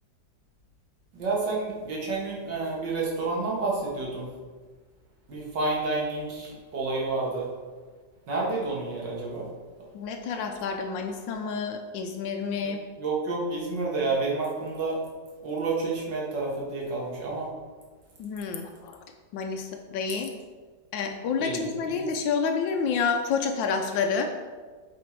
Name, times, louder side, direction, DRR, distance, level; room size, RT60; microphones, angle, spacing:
voice 1, 1.1-4.3 5.3-7.5 8.3-9.5 13.0-15.0 15.4-17.5 21.4-21.6 21.9-22.0, right 3 dB, 70° right, -4 dB, 2.4 m, -29 dB
voice 2, 9.9-12.8 18.2-19.0 19.3-20.3 20.9-24.3, left 5 dB, 85° left, 4 dB, 1.4 m, -29 dB
8.0 x 5.0 x 4.5 m, 1.4 s
omnidirectional pair, 2.0 m